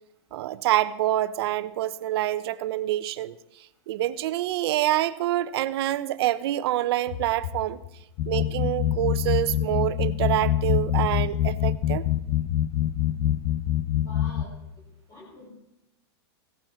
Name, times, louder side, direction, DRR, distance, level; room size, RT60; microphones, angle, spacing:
voice 1, 0.3-3.3 3.9-7.8 8.3-12.1, right 14 dB, 60° right, 0.9 m, -26 dB
sound 1, 7.1-8.2 8.9-10.0 10.7-11.8 12.5-13.6, left 10 dB, 80° left, 1.0 m, -38 dB
sound 2, 8.2-14.4, left 12 dB, 40° left, 0.8 m, -25 dB
voice 2, 14.0-14.6 15.1-15.5, left 2 dB, 20° left, 4.9 m, -45 dB
17.0 x 14.0 x 4.5 m
supercardioid pair, 145°, 15 cm